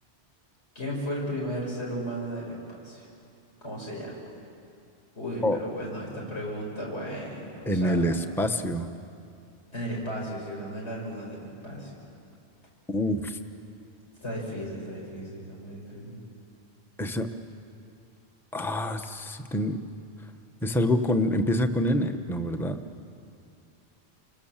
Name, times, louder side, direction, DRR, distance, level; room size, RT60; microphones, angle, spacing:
voice 1, 0.7-3.1 3.6-4.2 5.1-8.0 9.7-12.0 14.2-16.2, equal, 85° left, -3 dB, 6.1 m, -35 dB
voice 2, 7.7-8.9 12.9-13.4 17.0-17.3 18.5-19.8 20.6-22.8, left 1 dB, ahead, 6 dB, 1.0 m, -26 dB
29.5 x 26.0 x 7.4 m, 2.5 s
omnidirectional pair, 1.1 m